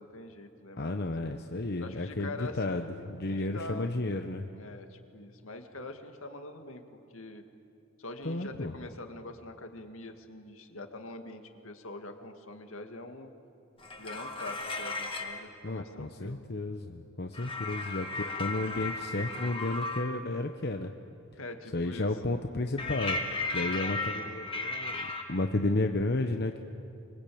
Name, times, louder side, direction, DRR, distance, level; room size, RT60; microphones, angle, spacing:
voice 1, 0.0-1.0 1.8-3.9 4.6-7.4 8.0-13.3 14.0-16.4 21.3-22.1, left 2 dB, 75° left, 5 dB, 2.2 m, -44 dB
voice 2, 0.8-4.5 8.2-8.7 15.6-20.9 21.7-23.2 23.5-26.6, left 2 dB, 50° left, 5 dB, 1.0 m, -32 dB
metal sliding sounds, 13.8-15.4 17.3-20.1 22.8-25.2, left 3 dB, 25° left, 2.1 m, -35 dB
25.5 x 24.0 x 8.7 m, 2.5 s
head